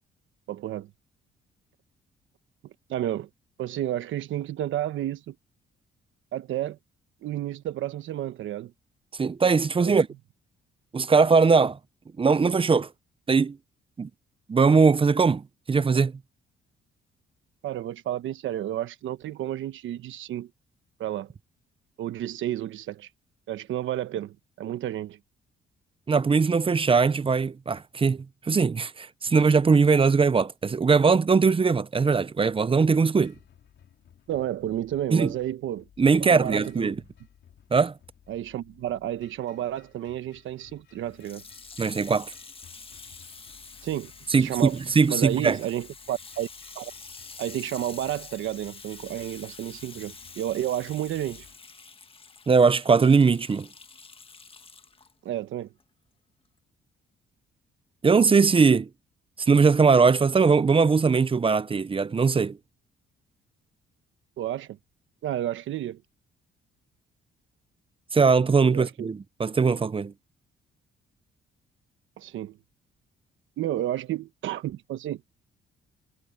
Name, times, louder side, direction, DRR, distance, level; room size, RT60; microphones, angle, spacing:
voice 1, 0.5-0.9 2.6-3.3 3.6-5.3 6.3-6.8 7.2-8.7 9.8-10.0 17.6-20.5 21.0-21.3 22.0-23.1 23.5-25.2 34.3-35.9 36.2-36.9 38.3-41.4 43.8-44.1 44.4-44.8 45.1-46.5 46.7-46.9 47.4-51.5 55.2-55.7 64.4-64.8 65.2-66.0 68.7-69.1 72.2-72.6 73.6-75.2, right 12 dB, 75° right, 1.2 m, -31 dB
voice 2, 9.2-10.1 10.9-11.8 12.2-12.9 13.3-13.6 14.0-14.1 14.5-15.4 15.7-16.1 26.1-33.3 35.1-35.3 36.0-37.0 37.7-37.9 41.8-42.3 44.3-45.6 52.5-53.7 58.0-58.9 59.4-62.6 68.1-70.1, right 5 dB, 25° right, 0.7 m, -20 dB
sound 1, 33.2-51.6, left 9 dB, 65° left, 4.4 m, -57 dB
Water tap faucet / Sink (filling or washing), 41.1-55.1 55.8-55.9, left 4 dB, 25° left, 1.5 m, -47 dB
cardioid pair, 90°, 20 cm